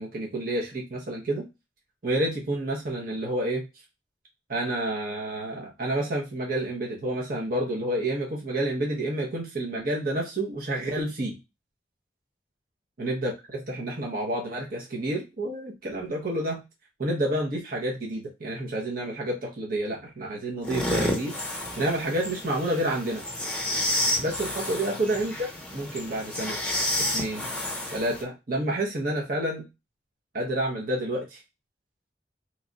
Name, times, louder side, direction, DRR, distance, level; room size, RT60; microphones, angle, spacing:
voice 1, 0.0-1.4 2.0-3.6 4.5-11.3 13.0-16.6 17.0-21.3 21.8-23.2 24.2-25.3 25.7-26.6 27.1-27.4 27.9-29.6 30.3-31.4, right 1 dB, 50° right, -2 dB, 0.9 m, -29 dB
sound 1, 20.6-28.2, left 1 dB, 5° left, 0.8 m, -30 dB
3.0 x 2.4 x 3.9 m, 0.24 s
head